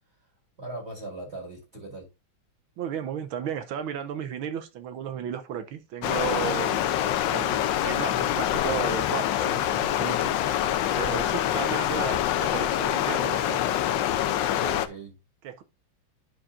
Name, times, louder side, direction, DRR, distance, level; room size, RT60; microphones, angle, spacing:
voice 1, 0.6-2.1 14.2-15.1, right 2 dB, 30° right, 2.1 m, -40 dB
voice 2, 2.8-10.7 10.9-13.7 14.5-14.8 15.4-15.6, right 8 dB, 75° right, 1.6 m, -34 dB
Stream, 6.0-14.9, left 11 dB, 75° left, 1.2 m, -25 dB
11.5 x 4.8 x 2.5 m
omnidirectional pair, 2.3 m